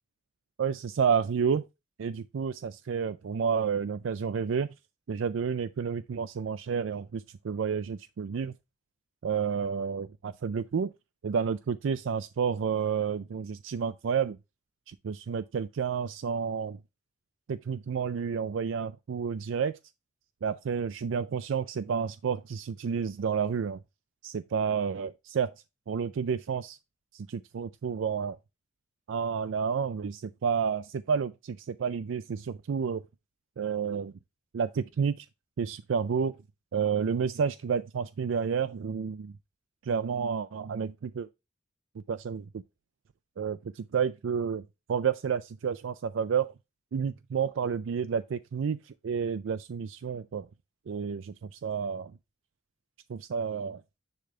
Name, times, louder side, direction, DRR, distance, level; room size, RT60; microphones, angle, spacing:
voice 1, 0.6-1.6 2.0-4.7 5.1-8.5 9.2-10.9 11.2-14.4 14.9-16.8 17.5-19.8 20.4-23.8 24.2-25.5 25.9-26.8 27.1-28.4 29.1-33.0 33.6-34.1 34.5-35.3 35.6-36.3 36.7-39.3 39.8-41.3 42.1-42.6 43.4-44.6 44.9-46.5 46.9-50.5 50.9-52.1 53.1-53.8, right 6 dB, 90° right, 0.4 m, -30 dB
10.0 x 3.4 x 3.7 m
head